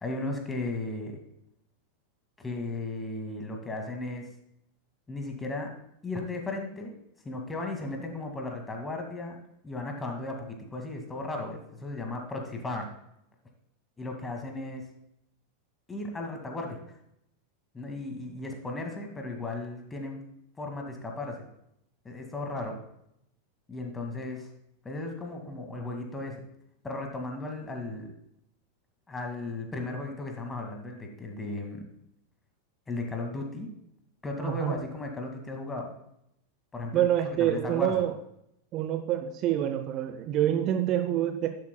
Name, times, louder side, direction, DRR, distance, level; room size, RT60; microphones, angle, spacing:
voice 1, 0.0-1.2 2.4-4.3 5.1-5.7 6.0-6.9 7.2-9.4 9.6-12.9 14.0-14.8 15.9-16.8 17.7-20.2 20.6-21.4 22.0-22.8 23.7-24.5 24.8-26.5 26.8-28.1 29.1-31.8 32.9-33.7 34.2-35.9 36.7-37.1 37.4-38.1, left 2 dB, 15° left, 3 dB, 2.1 m, -35 dB
voice 2, 34.4-34.8 36.9-38.1 38.7-41.5, right 11 dB, 35° right, 8 dB, 0.7 m, -27 dB
12.0 x 10.5 x 2.3 m, 0.77 s
figure-of-eight pair, 90°, 0 cm